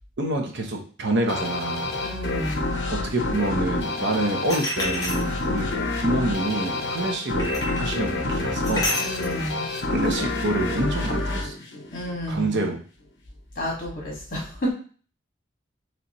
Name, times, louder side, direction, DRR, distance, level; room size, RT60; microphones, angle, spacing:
voice 1, 0.2-2.0 2.9-5.7 6.0-8.9 9.9-11.5 12.3-12.8, right 2 dB, 60° right, 3 dB, 0.8 m, -27 dB
sound 1, 1.3-12.5, left 2 dB, 60° left, 0.7 m, -28 dB
voice 2, 2.0-2.6 9.0-9.7 11.9-12.6 13.6-14.7, equal, 45° left, -2 dB, 1.7 m, -30 dB
sound 2, 4.5-5.7 7.4-7.9 8.6-9.4, left 1 dB, 20° left, 1.0 m, -29 dB
4.0 x 3.2 x 2.9 m, 0.41 s
head